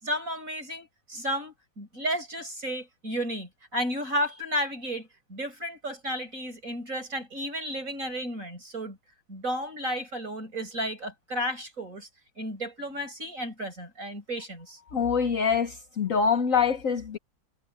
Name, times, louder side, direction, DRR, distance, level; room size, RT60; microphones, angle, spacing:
voice 1, 0.0-9.0 9.3-12.1 12.4-14.8, equal, 55° right, 7.8 m, -33 dB
voice 2, 14.9-17.2, left 6 dB, 55° left, 1.4 m, -25 dB
omnidirectional pair, 1.7 m